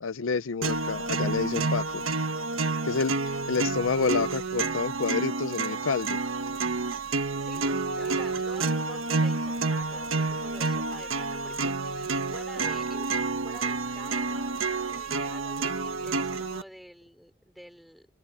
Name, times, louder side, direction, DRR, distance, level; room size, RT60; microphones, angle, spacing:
voice 1, 0.0-2.0 2.8-6.2, left 5 dB, 75° left, 0.6 m, -29 dB
sound 1, 0.6-16.6, right 3 dB, 90° right, 1.5 m, -29 dB
voice 2, 7.9-13.1 13.4-18.1, equal, ahead, 5.0 m, -48 dB
open air
head